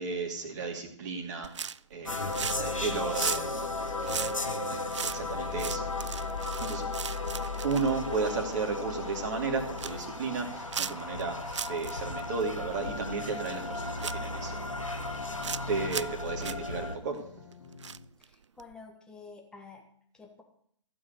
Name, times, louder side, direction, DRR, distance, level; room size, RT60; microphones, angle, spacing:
voice 1, 0.0-2.2 2.8-4.3 4.7-5.9 6.6-6.9 7.6-14.6 15.1-15.3 15.7-17.2, right 4 dB, 35° right, 2 dB, 2.6 m, -34 dB
sound 1, 1.4-1.9 2.3-2.8 3.0-8.6 9.1-9.2 9.5-10.0 10.7-11.2 11.5-11.9 12.2-12.3 13.5-13.6 14.0-14.6 15.1-15.6 15.9-16.2 16.4-16.6 17.8-18.2 18.6-18.7, right 6 dB, 65° right, 0.4 m, -36 dB
sound 2, 2.1-17.0, left 2 dB, 90° left, 1.6 m, -35 dB
sound 3, 12.2-18.1, left 3 dB, 60° left, 2.2 m, -51 dB
voice 2, 18.2-19.8 20.1-20.4, left 4 dB, 5° left, 1 dB, 1.5 m, -49 dB
15.0 x 6.4 x 8.1 m, 0.65 s
figure-of-eight pair, 130°, 16 cm